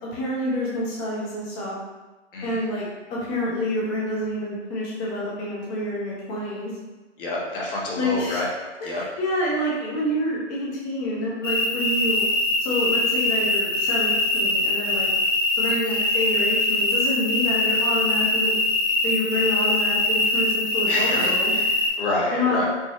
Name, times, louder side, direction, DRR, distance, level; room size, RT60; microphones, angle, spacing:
voice 1, 0.0-1.7 2.4-6.7 8.0-8.4 8.8-12.3 12.6-15.1 15.6-18.6 19.0-21.5 22.3-22.6, left 1 dB, 15° left, -5 dB, 0.6 m, -27 dB
voice 2, 2.3-2.6 7.2-8.5 8.8-9.0 15.7-15.8 20.9-21.7 22.0-22.7, left 2 dB, 45° left, -3 dB, 1.1 m, -28 dB
sound 1, 11.4-21.9, left 2 dB, 75° left, 1.3 m, -23 dB
5.0 x 2.6 x 2.5 m, 1.2 s
hypercardioid pair, 145°, 37 cm